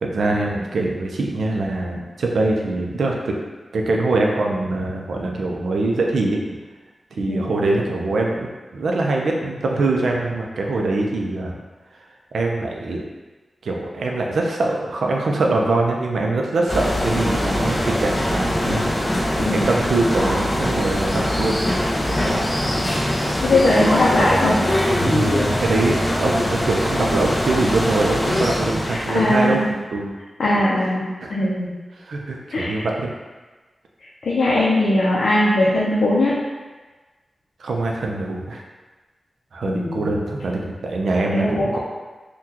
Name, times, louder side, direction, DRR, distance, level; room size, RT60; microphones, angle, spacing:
voice 1, 0.0-3.3 3.7-6.4 7.2-11.6 12.3-13.0 13.6-21.6 22.1-22.4 24.8-30.1 31.2-31.3 32.0-33.1 37.6-38.6 39.5-41.8, right 2 dB, 90° right, 0 dB, 0.4 m, -23 dB
sound 1, 16.7-29.6, left 1 dB, 25° left, 0.6 m, -22 dB
voice 2, 23.4-24.6 28.9-29.7 30.4-31.7 32.5-32.8 34.2-36.3 39.6-40.0 41.3-41.8, left 1 dB, 80° left, -7 dB, 0.5 m, -19 dB
3.7 x 2.2 x 2.8 m, 1.3 s
wide cardioid pair, 170°, 0 cm